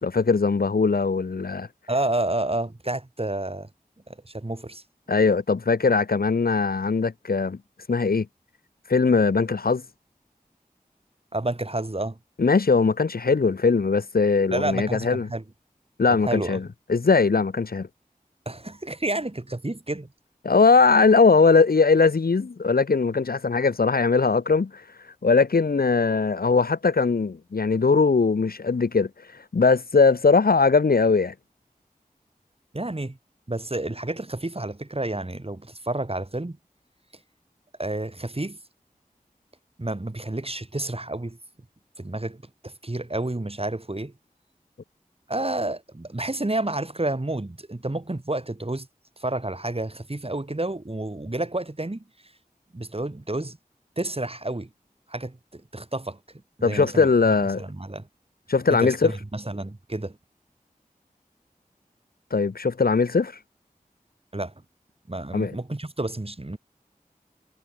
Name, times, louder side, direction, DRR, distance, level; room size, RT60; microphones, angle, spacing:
voice 1, 0.0-1.7 5.1-7.6 7.9-8.3 8.9-9.8 12.4-15.3 16.0-16.6 16.9-17.9 20.4-24.8 25.2-29.1 29.5-31.3 56.6-57.6 58.5-59.1 62.3-63.3 65.3-65.5, left 4 dB, 80° left, 0.8 m, -20 dB
voice 2, 1.9-3.7 4.1-4.8 11.3-12.2 14.5-15.4 16.2-16.6 18.4-20.1 32.7-33.2 33.5-36.6 37.8-38.6 39.8-41.4 42.0-44.1 45.3-48.9 49.2-52.0 52.7-53.6 54.0-54.7 55.1-56.2 56.6-57.1 57.6-58.1 58.7-60.2 64.3-64.5 65.1-66.6, right 2 dB, 40° right, 3.0 m, -30 dB
wide cardioid pair, 45°, 15 cm